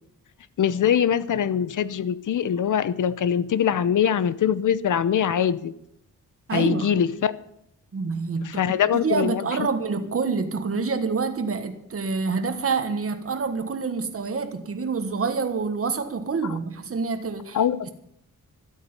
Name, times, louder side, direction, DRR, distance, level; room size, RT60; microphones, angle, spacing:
voice 1, 0.6-5.7 6.5-7.3 8.4-9.7 17.5-17.9, left 8 dB, 70° left, 16 dB, 0.8 m, -23 dB
voice 2, 6.5-6.9 7.9-8.6 8.9-17.6, right 4 dB, 45° right, 7 dB, 1.4 m, -27 dB
13.0 x 8.3 x 9.6 m, 0.77 s
cardioid pair, 85°, 32 cm